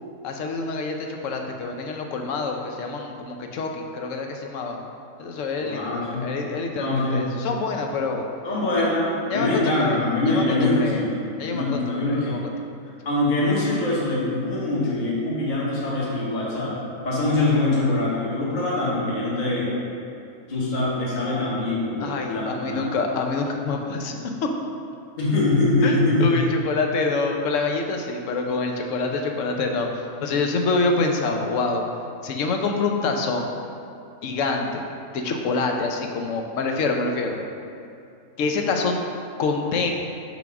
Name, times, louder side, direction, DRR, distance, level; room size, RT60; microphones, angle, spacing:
voice 1, 0.2-4.8 5.2-8.2 8.8-9.0 9.3-11.0 11.4-12.4 22.0-24.5 25.8-31.8 32.2-33.6 34.2-34.8 35.1-37.4 38.4-39.0 39.4-39.9, left 3 dB, 65° left, 3 dB, 0.9 m, -26 dB
voice 2, 5.6-6.3 6.8-7.4 8.4-12.4 13.0-19.7 20.5-22.9 25.2-26.4, left 2 dB, 35° left, -7 dB, 1.2 m, -23 dB
6.0 x 3.5 x 5.8 m, 2.5 s
omnidirectional pair, 1.6 m